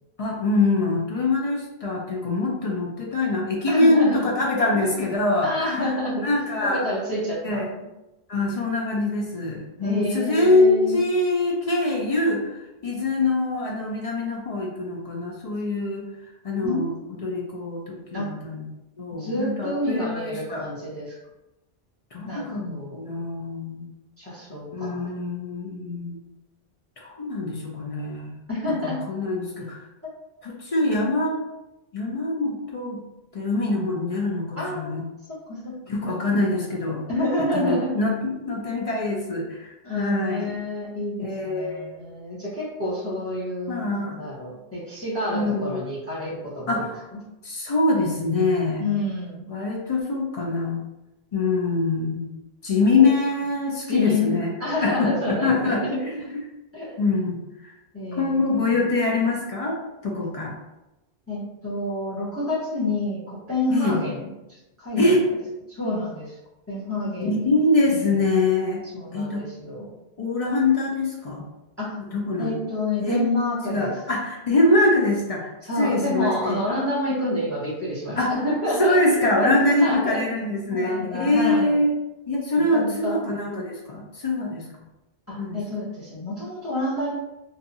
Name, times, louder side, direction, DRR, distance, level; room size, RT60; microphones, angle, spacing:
voice 1, 0.2-5.9 6.2-6.9 7.4-7.7 8.3-16.1 16.4-16.9 17.2-18.7 19.0-20.6 22.1-23.9 24.7-26.2 27.0-28.4 28.8-29.8 30.4-31.4 31.9-33.0 33.3-35.0 35.9-37.0 37.5-40.6 41.2-41.9 43.7-44.2 45.3-45.8 46.7-47.0 47.4-48.8 49.5-50.8 51.3-52.3 52.6-54.5 54.8-56.2 57.0-57.4 57.6-57.7 58.1-60.6 63.7-64.0 65.0-65.2 67.2-68.8 69.1-69.4 70.2-71.4 72.0-72.5 73.0-73.2 73.7-76.6 78.2-78.3 78.8-81.9 82.3-84.7 85.4-85.6, left 2 dB, 55° left, -2 dB, 0.4 m, -24 dB
voice 2, 3.7-4.2 5.4-6.2 6.6-7.9 9.8-11.0 16.6-17.0 18.1-18.3 19.2-21.2 22.3-23.0 24.2-25.1 28.5-29.0 30.0-30.1 34.6-35.0 35.3-35.9 37.1-37.9 39.8-46.8 48.8-49.5 53.9-54.3 54.6-56.0 56.7-57.0 57.9-58.8 61.3-65.1 65.7-66.4 66.7-67.5 67.9-68.0 68.9-69.9 71.8-72.0 72.4-73.9 75.6-79.0 79.3-80.2 80.7-81.8 82.6-83.2 85.3-87.1, left 1 dB, 15° left, -8 dB, 0.8 m, -28 dB
2.7 x 2.3 x 2.6 m, 0.97 s
omnidirectional pair, 1.1 m